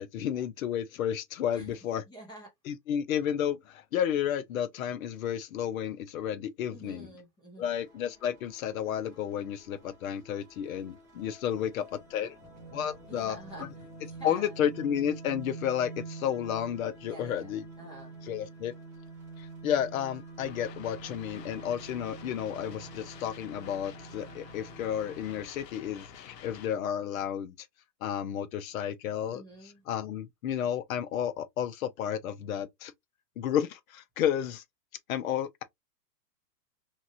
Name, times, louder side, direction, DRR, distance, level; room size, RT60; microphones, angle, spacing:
voice 1, 0.0-2.0 2.7-7.1 7.6-12.4 12.7-13.7 14.2-17.6 18.3-18.7 19.4-27.5 28.0-29.4 29.9-32.9 33.4-34.6 35.1-35.6, left 9 dB, 60° left, 0.6 m, -32 dB
voice 2, 2.1-2.5 6.7-7.8 12.1-12.5 13.0-14.6 17.1-18.3 29.3-29.8, right 1 dB, 10° left, 0.7 m, -48 dB
sound 1, 7.8-25.5, right 3 dB, 15° right, 0.3 m, -47 dB
sound 2, 20.4-26.7, left 8 dB, 85° left, 0.8 m, -49 dB
2.9 x 2.3 x 2.7 m
hypercardioid pair, 155°, 48 cm